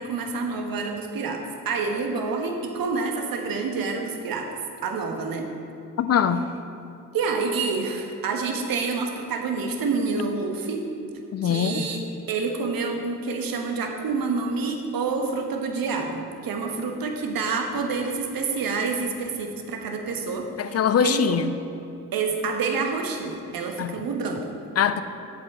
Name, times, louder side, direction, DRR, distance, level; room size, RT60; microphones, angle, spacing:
voice 1, 0.0-4.5 4.8-5.5 7.1-10.9 11.4-12.0 12.3-21.4 22.1-24.5, right 4 dB, 55° right, 3 dB, 1.2 m, -28 dB
voice 2, 6.0-6.4 11.3-11.9 20.6-21.5 23.8-24.0 24.8-25.0, left 8 dB, 40° left, 12 dB, 0.5 m, -22 dB
7.8 x 7.5 x 4.3 m, 2.7 s
hypercardioid pair, 45°, 42 cm